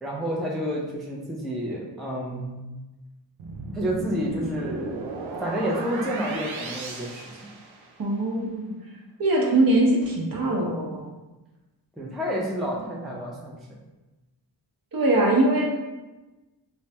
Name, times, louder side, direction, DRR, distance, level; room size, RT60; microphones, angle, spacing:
voice 1, 0.0-2.6 3.7-5.1 5.4-7.2 12.0-13.6, equal, ahead, -3 dB, 0.4 m, -29 dB
sound 1, 3.4-8.1, right 3 dB, 90° right, 0.5 m, -36 dB
voice 2, 8.0-8.7 9.2-11.1 14.9-15.7, right 1 dB, 50° right, -2 dB, 0.7 m, -22 dB
3.2 x 2.1 x 2.7 m, 1.1 s
wide cardioid pair, 80°, 46 cm